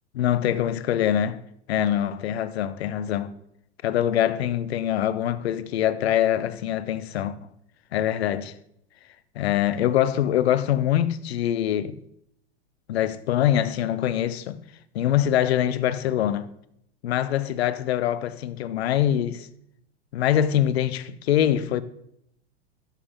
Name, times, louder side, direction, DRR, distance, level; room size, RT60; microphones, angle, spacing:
voice 1, 0.1-1.4 1.7-3.3 3.8-7.4 7.9-8.5 9.3-12.0 12.9-14.6 14.9-16.5 17.0-19.5 20.1-21.8, left 11 dB, 65° left, 0.7 m, -24 dB
11.0 x 7.3 x 3.6 m
figure-of-eight pair, 95°, 34 cm